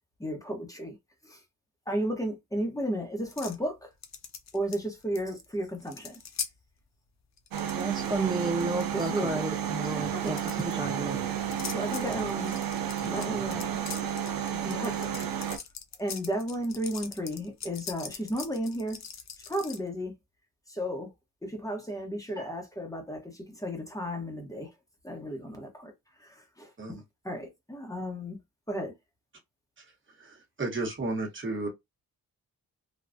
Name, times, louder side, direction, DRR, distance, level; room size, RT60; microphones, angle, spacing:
voice 1, 0.2-1.0 1.2-1.4 1.9-3.9 4.5-6.2 8.9-9.4 10.1-10.4 11.6-12.6 13.0-13.8 14.5-15.2 16.0-19.0 19.5-20.1 20.7-21.1 21.4-24.7 25.0-25.9 26.2-26.7 27.2-28.4 28.7-28.9, equal, 10° left, 0.9 m, -34 dB
sound 1, 3.3-3.6 4.0-5.2 5.4-5.5 5.8-6.5 7.4-8.1 8.4-9.2 10.2-10.7 11.5-19.8, left 6 dB, 50° left, 0.6 m, -41 dB
sound 2, 7.5-15.6, right 9 dB, 80° right, 0.7 m, -32 dB
voice 2, 7.7-11.2, right 3 dB, 15° right, 0.3 m, -32 dB
voice 3, 30.2-31.7, right 2 dB, 35° right, 1.1 m, -33 dB
3.4 x 2.2 x 2.5 m
wide cardioid pair, 120°, 35 cm